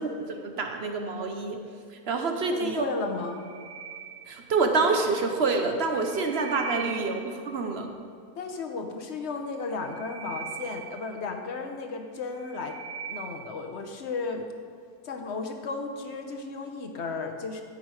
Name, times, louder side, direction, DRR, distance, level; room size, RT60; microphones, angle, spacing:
voice 1, 0.0-1.6 2.1-2.9 4.3-7.9, right 4 dB, 50° right, 4 dB, 0.9 m, -27 dB
voice 2, 2.5-3.4 6.8-7.1 8.4-12.8 13.1-14.5 15.0-17.6, left 4 dB, 50° left, 4 dB, 0.9 m, -34 dB
sound 1, 3.2-4.8 5.8-7.6 9.6-11.7 12.2-13.7, right 8 dB, 80° right, 1.7 m, -41 dB
13.0 x 5.6 x 4.8 m, 2.3 s
omnidirectional pair, 1.8 m